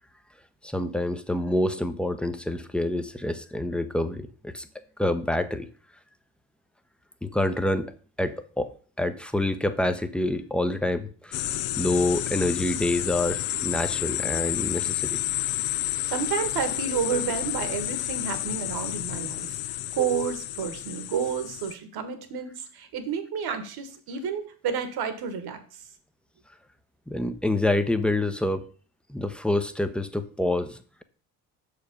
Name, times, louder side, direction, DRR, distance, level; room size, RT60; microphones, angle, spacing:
voice 1, 0.6-4.7 5.0-5.7 7.2-7.9 8.2-8.7 9.0-15.2 27.1-28.7 29.1-31.0, left 1 dB, ahead, 10 dB, 0.8 m, -27 dB
sound 1, 11.3-21.7, left 14 dB, 55° left, 0.6 m, -30 dB
voice 2, 16.1-25.6, right 7 dB, 60° right, 9 dB, 1.5 m, -30 dB
6.5 x 5.1 x 5.3 m, 0.41 s
hypercardioid pair, 60°, 43 cm